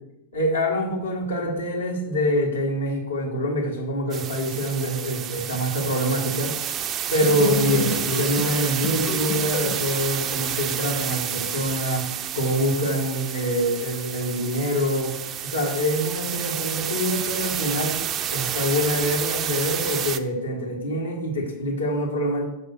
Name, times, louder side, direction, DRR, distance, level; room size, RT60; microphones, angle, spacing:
voice 1, 0.3-6.5 7.1-12.1 12.3-15.1 15.4-18.0 18.3-22.4, equal, 80° left, -3 dB, 1.7 m, -25 dB
sound 1, 4.1-20.2, right 9 dB, 30° right, 0.3 m, -29 dB
sound 2, 7.2-9.9, left 2 dB, 20° left, 0.6 m, -31 dB
6.7 x 3.6 x 5.1 m, 0.90 s
figure-of-eight pair, 90°, 0 cm